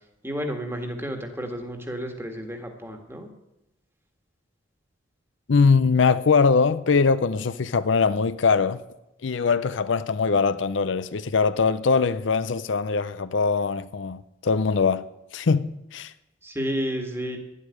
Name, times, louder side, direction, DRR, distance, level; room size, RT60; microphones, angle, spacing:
voice 1, 0.2-3.3 16.4-17.4, equal, 10° right, 1.7 m, -31 dB
voice 2, 5.5-8.8 9.2-15.1 15.3-16.1, left 5 dB, 75° left, 0.5 m, -22 dB
11.5 x 8.2 x 9.7 m
head